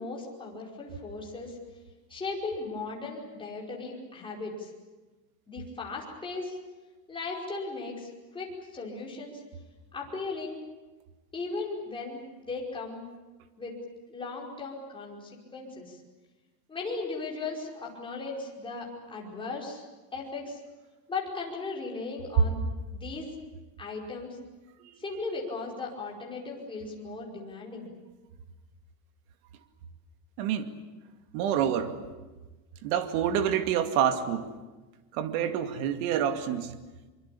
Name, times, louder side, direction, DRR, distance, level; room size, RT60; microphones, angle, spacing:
voice 1, 0.0-1.6 2.1-4.7 5.5-6.6 7.1-9.4 9.9-10.6 11.3-13.0 13.6-13.7 14.1-16.0 16.7-19.8 20.1-20.6 21.1-22.6 22.9-23.3 23.8-24.4 25.0-27.9, left 3 dB, 10° left, -3 dB, 5.0 m, -37 dB
voice 2, 31.3-32.0 32.8-34.5 35.1-36.7, right 9 dB, 55° right, 8 dB, 2.5 m, -27 dB
24.5 x 24.0 x 8.6 m, 1.2 s
supercardioid pair, 170°, 50 cm